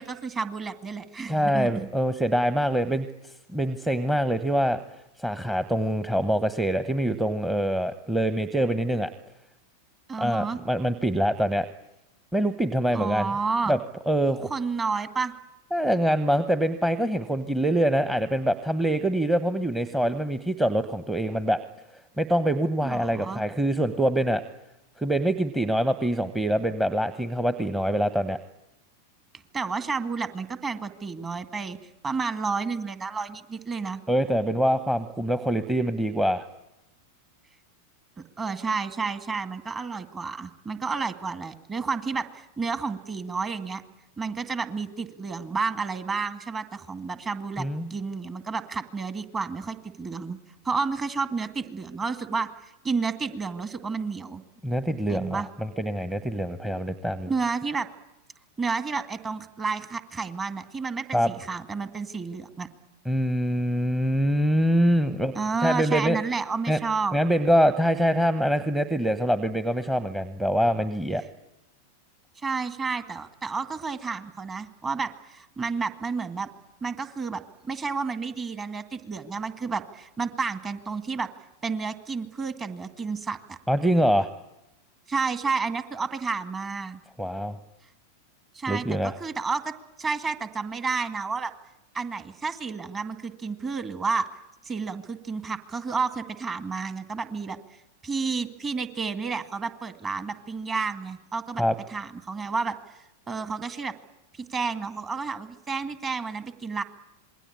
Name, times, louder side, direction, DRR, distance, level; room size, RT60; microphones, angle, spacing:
voice 1, 0.0-2.0 10.1-10.6 12.9-13.8 14.5-15.3 22.8-23.4 29.5-31.8 32.0-34.0 38.2-43.8 44.2-50.4 50.6-54.4 55.1-55.5 57.3-57.9 58.6-62.7 65.4-67.2 72.4-76.5 76.8-81.3 81.6-83.6 85.1-87.0 88.5-89.7 90.0-91.5 91.9-94.2 94.6-97.6 98.0-101.6 101.9-102.7 103.3-103.9 104.3-106.8, right 4 dB, 20° right, 11 dB, 2.1 m, -31 dB
voice 2, 1.3-9.1 10.2-11.7 12.3-13.3 13.7-13.8 14.1-14.5 15.7-21.6 22.2-24.4 25.0-28.4 34.1-36.4 47.6-47.9 54.6-57.3 61.1-61.3 63.0-65.3 65.6-66.2 66.7-66.8 67.1-71.2 83.7-84.3 87.2-87.6 88.7-89.1 101.6-101.7, equal, 5° right, 13 dB, 1.1 m, -24 dB
27.0 x 21.5 x 8.6 m, 0.92 s
figure-of-eight pair, 90°, 0 cm